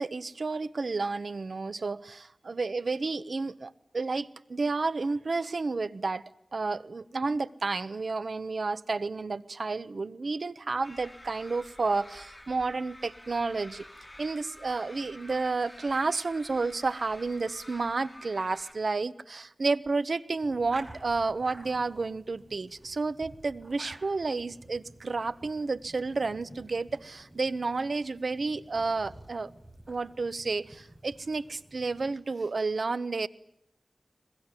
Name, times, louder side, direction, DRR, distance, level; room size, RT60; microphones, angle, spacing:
voice 1, 0.0-6.2 6.5-13.9 14.2-29.5 29.9-33.3, right 3 dB, 70° right, 16 dB, 1.0 m, -31 dB
sound 1, 10.8-18.7, left 1 dB, 15° left, 4.2 m, -50 dB
sound 2, 20.4-32.1, right 1 dB, 20° right, 5.6 m, -52 dB
22.5 x 21.5 x 9.9 m, 0.75 s
wide cardioid pair, 65°, 0 cm